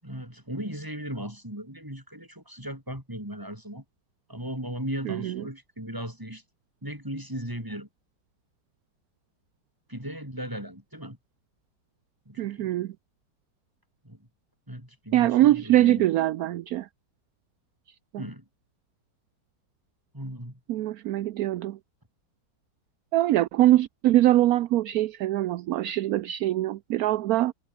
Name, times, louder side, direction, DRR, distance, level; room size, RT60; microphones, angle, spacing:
voice 1, 0.0-3.8 4.3-6.4 6.8-7.9 9.9-11.2 12.3-12.8 14.0-14.3 14.7-16.1 18.2-18.4 20.1-20.6, equal, 10° right, 7.3 m, -37 dB
voice 2, 12.4-12.9 15.1-16.9 20.7-21.8 23.1-27.5, right 14 dB, 70° right, 0.9 m, -23 dB
omnidirectional pair, 2.0 m